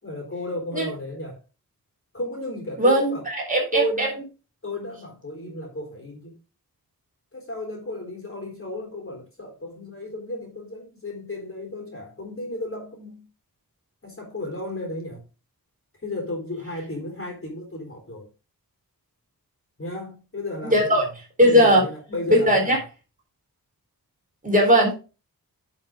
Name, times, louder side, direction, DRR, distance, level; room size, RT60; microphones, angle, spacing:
voice 1, 0.0-1.4 2.1-3.2 3.7-4.2 4.6-6.4 7.3-13.3 14.0-15.2 16.0-18.3 19.8-21.0 21.4-22.8, left 1 dB, 35° left, 3.9 m, -33 dB
voice 2, 2.8-4.1 20.6-21.0 21.4-21.8 22.3-22.8 24.4-25.0, equal, 20° right, 4.0 m, -18 dB
11.0 x 5.6 x 3.7 m
wide cardioid pair, 130°, 35 cm